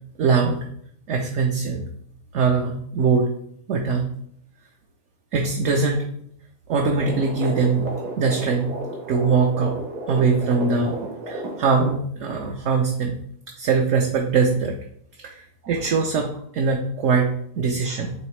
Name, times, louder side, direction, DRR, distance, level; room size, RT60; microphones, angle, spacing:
voice 1, 0.2-0.6 1.1-1.8 2.3-3.3 3.7-4.1 5.3-6.0 6.7-7.9 8.2-8.7 9.1-9.7 10.1-10.9 11.3-13.2 13.6-14.7 15.2-18.1, right 5 dB, 60° right, 1 dB, 0.9 m, -22 dB
sound 1, 6.9-11.9, right 2 dB, 85° right, 1.7 m, -32 dB
8.6 x 3.5 x 3.2 m, 0.67 s
omnidirectional pair, 1.6 m